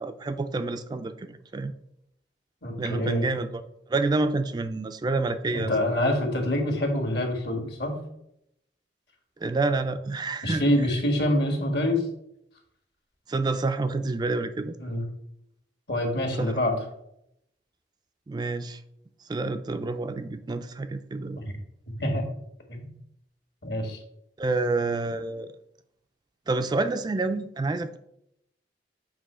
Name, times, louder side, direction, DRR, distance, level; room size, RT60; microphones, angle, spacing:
voice 1, 0.0-1.7 2.8-3.6 3.9-5.7 9.4-10.6 13.3-14.8 16.4-16.6 18.3-18.8 19.3-21.4 24.4-25.5 26.5-28.0, right 3 dB, 25° right, 10 dB, 0.3 m, -28 dB
voice 2, 2.6-3.2 5.5-8.0 10.4-12.0 14.8-15.0 15.9-16.8 21.3-21.4 22.0-22.2 22.7-22.9 23.6-24.0, left 1 dB, 65° left, 3 dB, 1.6 m, -26 dB
7.3 x 3.0 x 5.5 m, 0.78 s
head